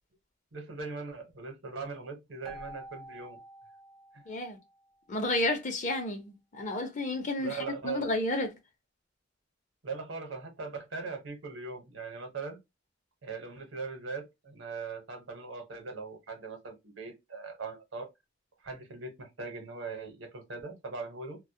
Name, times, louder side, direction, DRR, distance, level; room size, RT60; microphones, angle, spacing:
voice 1, 0.5-3.4 4.1-4.2 7.4-8.1 9.8-12.6 13.2-18.1 18.6-21.4, right 4 dB, 80° right, 0.9 m, -40 dB
Keyboard (musical), 2.4-5.1, right 1 dB, 5° right, 0.5 m, -49 dB
voice 2, 4.3-4.6 5.1-8.5, left 2 dB, 40° left, 0.6 m, -31 dB
2.2 x 2.0 x 2.7 m
head